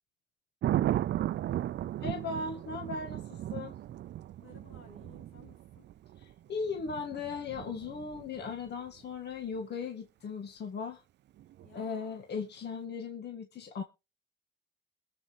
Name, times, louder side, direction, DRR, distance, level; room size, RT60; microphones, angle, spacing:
Thunder, 0.6-8.7 11.4-11.7, right 13 dB, 60° right, 0.5 m, -35 dB
voice 1, 2.0-3.8 6.2-11.0 11.7-13.8, left 5 dB, 60° left, 3 dB, 1.6 m, -38 dB
voice 2, 4.4-5.9 11.6-12.2, left 3 dB, 90° left, 0 dB, 4.2 m, -56 dB
22.0 x 7.6 x 3.1 m, 0.29 s
cardioid pair, 90°, 20 cm